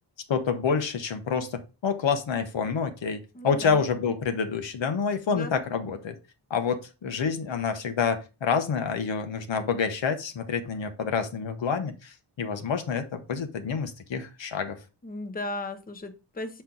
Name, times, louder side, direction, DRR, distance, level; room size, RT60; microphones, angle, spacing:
voice 1, 0.3-6.2 6.5-14.8, left 6 dB, 80° left, 8 dB, 1.1 m, -28 dB
voice 2, 3.3-3.8 5.3-5.6 15.0-16.6, left 2 dB, 20° left, 8 dB, 0.8 m, -36 dB
7.2 x 4.4 x 3.9 m, 0.30 s
wide cardioid pair, 125°, 45 cm